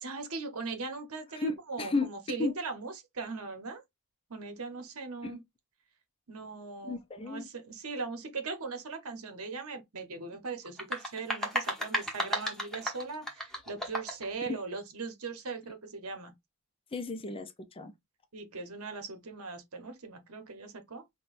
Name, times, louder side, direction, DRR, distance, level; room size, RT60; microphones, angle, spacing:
voice 1, 0.0-3.8 4.3-5.4 6.3-16.3 18.3-21.0, right 4 dB, 70° right, 1.0 m, -39 dB
voice 2, 1.4-2.1 2.4-2.5 6.8-7.5 16.9-17.9, left 3 dB, 25° left, 0.5 m, -33 dB
sound 1, 10.6-14.3, equal, ahead, 1.0 m, -34 dB
5.8 x 2.3 x 2.5 m
head